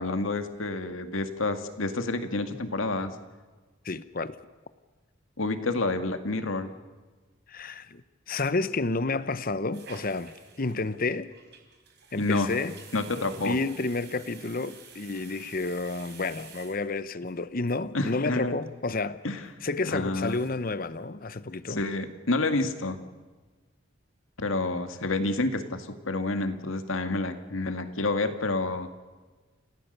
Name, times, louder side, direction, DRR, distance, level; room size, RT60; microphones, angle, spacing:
voice 1, 0.0-3.1 5.4-6.7 12.2-12.5 12.9-13.6 17.9-18.6 19.2-19.4 19.8-20.4 21.7-23.0 24.4-28.9, left 2 dB, 85° left, 2.0 m, -29 dB
voice 2, 3.8-4.4 7.5-8.0 8.3-11.3 12.1-12.8 13.4-19.2 19.6-21.8, left 3 dB, 45° left, 0.9 m, -30 dB
sound 1, 9.7-17.3 17.7-17.8 18.0-18.1 18.4-18.8 19.1-19.2 19.7-19.8 20.1-20.7 20.9-21.0 21.4-21.9 22.2-22.3, right 5 dB, 55° right, 4.3 m, -50 dB
29.0 x 17.0 x 6.7 m
head